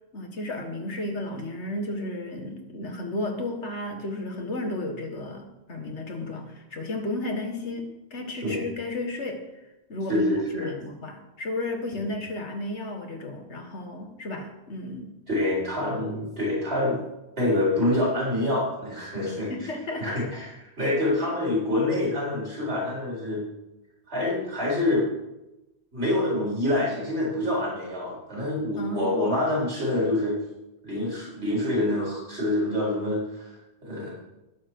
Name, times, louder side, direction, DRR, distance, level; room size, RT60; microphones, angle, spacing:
voice 1, 0.1-9.5 9.9-10.3 10.5-15.1 19.5-20.2 20.8-20.9 28.8-29.3, left 2 dB, 85° left, 4 dB, 2.1 m, -33 dB
voice 2, 10.1-10.7 12.0-12.1 15.3-17.0 17.4-19.7 20.0-23.4 24.1-25.1 25.9-30.3 30.8-33.5 33.8-34.1, left 1 dB, 75° right, -6 dB, 4.6 m, -26 dB
20.5 x 7.2 x 4.8 m, 0.96 s
omnidirectional pair, 1.1 m